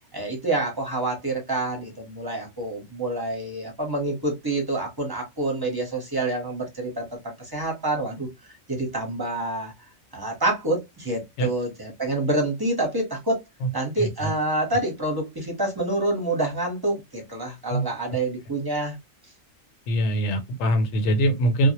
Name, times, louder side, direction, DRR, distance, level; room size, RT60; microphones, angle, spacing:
voice 1, 0.1-8.3 8.7-9.7 10.1-13.4 13.7-19.0, right 2 dB, 20° right, 0.7 m, -27 dB
voice 2, 14.0-14.3 17.7-17.9 19.9-21.7, right 1 dB, 80° left, 1.0 m, -23 dB
2.2 x 2.0 x 2.8 m
omnidirectional pair, 1.4 m